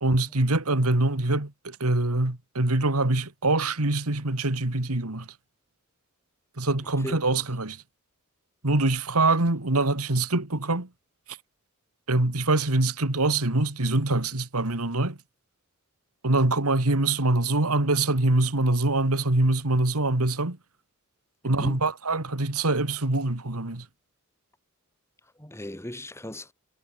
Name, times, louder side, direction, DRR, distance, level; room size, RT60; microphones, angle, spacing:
voice 1, 0.0-5.3 6.6-7.8 8.6-10.9 12.1-15.2 16.2-20.6 21.4-23.9, right 2 dB, 90° right, 2.4 m, -24 dB
voice 2, 6.8-7.2 21.4-21.8 25.3-26.5, left 1 dB, 10° left, 1.7 m, -38 dB
head